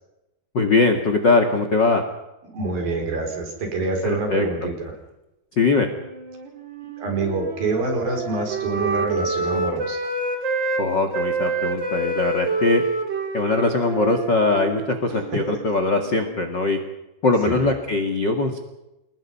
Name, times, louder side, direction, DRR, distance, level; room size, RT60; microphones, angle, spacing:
voice 1, 0.5-2.0 4.0-4.5 5.5-5.9 10.8-12.8 13.3-16.8 17.2-18.6, left 3 dB, 45° left, 5 dB, 1.4 m, -21 dB
voice 2, 2.5-5.0 7.0-10.1 15.3-15.4 17.4-17.7, right 3 dB, 50° right, 3 dB, 6.4 m, -26 dB
Wind instrument woodwind instrument, 5.9-10.8 11.1-16.4, right 3 dB, 30° right, 2.6 m, -28 dB
29.5 x 20.0 x 5.7 m, 0.95 s
omnidirectional pair, 5.2 m